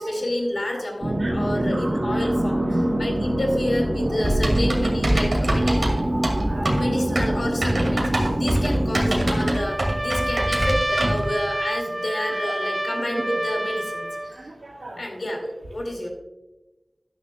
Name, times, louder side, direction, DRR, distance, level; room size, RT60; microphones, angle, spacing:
voice 1, 0.0-2.7 3.0-5.8 6.7-14.5 15.0-15.4 15.7-16.1, left 1 dB, 80° left, 2 dB, 2.3 m, -29 dB
sound 1, 1.0-9.6, right 1 dB, 45° right, 1.5 m, -25 dB
voice 2, 1.2-2.3 2.7-2.8 4.1-4.2 6.3-7.3 12.5-12.7 13.0-13.4 14.2-15.4, right 1 dB, 85° right, -3 dB, 1.5 m, -35 dB
Typing, 4.2-11.3, right 1 dB, 70° right, 2.1 m, -24 dB
Trumpet, 9.5-14.3, right 1 dB, 20° right, 0.9 m, -28 dB
12.5 x 9.9 x 2.3 m, 1.0 s
wide cardioid pair, 50°, 0 cm